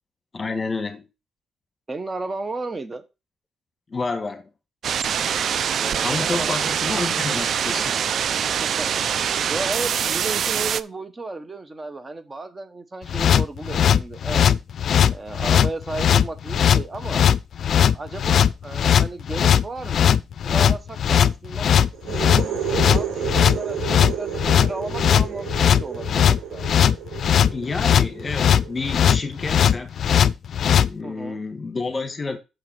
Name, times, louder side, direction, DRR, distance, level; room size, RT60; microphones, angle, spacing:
voice 1, 0.3-1.0 3.9-4.5 6.0-7.9 27.5-29.9 30.9-32.4, left 3 dB, 30° left, 1.4 m, -29 dB
voice 2, 1.9-3.0 5.8-6.7 8.6-9.0 9.5-14.5 15.1-17.2 17.7-20.1 20.4-26.6 31.0-31.4, right 3 dB, 25° right, 1.1 m, -34 dB
sound 1, 4.8-10.8, right 8 dB, 60° right, 0.5 m, -24 dB
sound 2, 13.1-30.9, left 9 dB, 60° left, 0.4 m, -18 dB
sound 3, 21.9-29.5, right 9 dB, 80° right, 4.2 m, -32 dB
6.5 x 4.8 x 6.0 m
cardioid pair, 90°, 0 cm